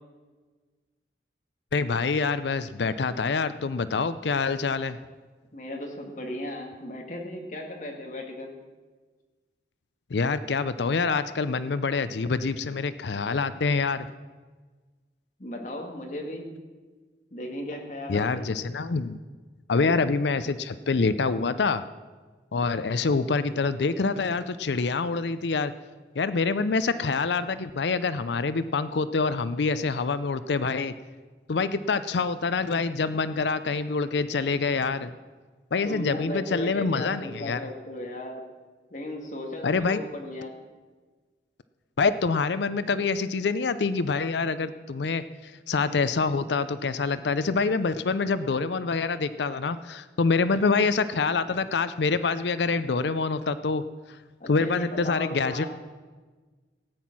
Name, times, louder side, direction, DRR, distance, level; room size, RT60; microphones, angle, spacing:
voice 1, 1.7-5.0 10.1-14.1 18.1-19.2 19.7-21.8 22.5-25.7 26.2-30.9 31.5-35.1 35.7-37.6 39.6-40.0 42.0-53.8 54.5-55.7, left 4 dB, 75° left, 13 dB, 0.5 m, -26 dB
voice 2, 5.5-8.6 15.4-16.5 17.3-18.6 35.8-38.5 38.9-40.5 54.4-55.7, left 1 dB, 45° left, 2 dB, 2.0 m, -36 dB
16.5 x 9.3 x 6.0 m, 1.4 s
head